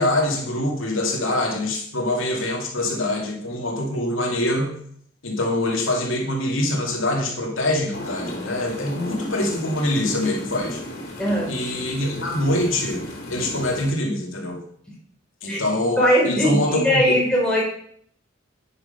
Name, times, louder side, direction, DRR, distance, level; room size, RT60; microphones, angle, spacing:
voice 1, 0.0-4.7 5.2-10.8 11.5-13.0 13.3-14.6 15.4-17.1, left 1 dB, 75° left, 0 dB, 2.4 m, -24 dB
sound 1, 7.9-13.9, left 1 dB, 45° left, 3.6 m, -34 dB
voice 2, 11.2-11.5 15.5-15.6 16.0-17.6, equal, 5° left, -5 dB, 3.4 m, -19 dB
10.5 x 6.9 x 5.6 m, 0.64 s
head